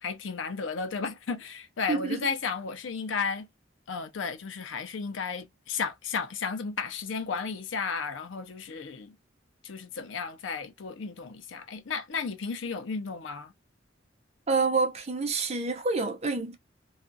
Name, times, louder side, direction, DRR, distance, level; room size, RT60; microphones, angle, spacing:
voice 1, 0.0-3.5 3.9-9.2 9.6-13.5, left 5 dB, 70° left, 0.5 m, -33 dB
voice 2, 1.9-2.3 14.5-16.5, right 4 dB, 35° right, 0.6 m, -27 dB
2.4 x 2.3 x 2.5 m
head